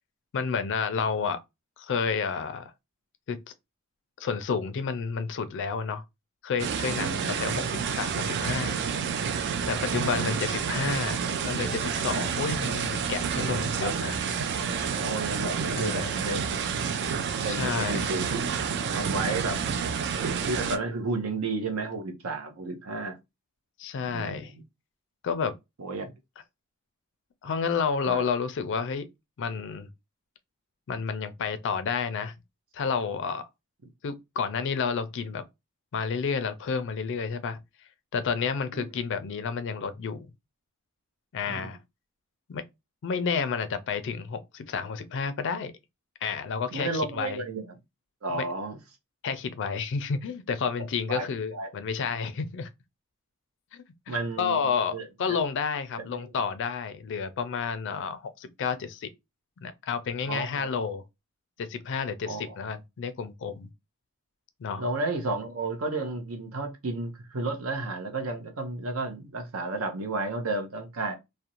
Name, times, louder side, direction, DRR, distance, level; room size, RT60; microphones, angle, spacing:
voice 1, 0.3-1.4 1.8-2.7 3.3-3.4 4.2-6.0 6.4-8.8 9.7-14.2 15.8-16.2 17.4-18.1 23.8-24.5 25.2-25.6 27.4-29.1 29.4-29.9 30.9-32.3 32.7-33.5 34.0-35.4 35.9-37.6 38.1-40.3 41.3-41.8 42.5-42.6 43.0-45.7 46.2-47.4 48.3-48.5 49.2-52.7 54.1-59.1 59.6-61.0 61.6-63.7 64.6-64.8, left 5 dB, 55° left, 0.4 m, -30 dB
sound 1, 6.6-20.8, right 6 dB, 55° right, 0.3 m, -29 dB
voice 2, 9.6-10.3 13.8-13.9 14.5-16.5 17.4-18.4 18.9-19.7 20.5-23.2 24.1-24.6 25.8-26.1 28.1-28.2 38.7-38.9 41.5-41.7 46.7-47.7 48.2-48.8 51.1-51.7 54.1-54.6 54.9-55.1 56.2-56.3 60.2-60.7 62.3-62.6 64.8-71.1, right 3 dB, 70° right, 0.7 m, -32 dB
2.5 x 2.1 x 2.8 m
head